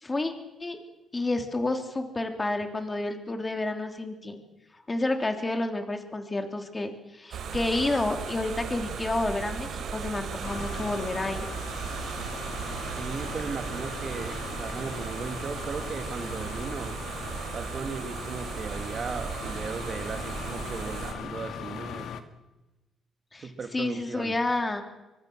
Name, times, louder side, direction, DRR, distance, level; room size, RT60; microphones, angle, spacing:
voice 1, 0.0-0.3 0.6-0.8 1.1-4.4 4.9-11.5 23.3-24.8, left 2 dB, 20° left, 5 dB, 3.4 m, -30 dB
sound 1, 7.3-21.1, right 6 dB, 70° right, 4.8 m, -36 dB
sound 2, 10.4-22.2, left 7 dB, 70° left, 2.0 m, -40 dB
voice 2, 12.9-17.0 17.5-22.1 23.4-24.4, right 5 dB, 45° right, 7 dB, 2.4 m, -37 dB
24.0 x 24.0 x 6.4 m, 1.0 s
cardioid pair, 90°, 0 cm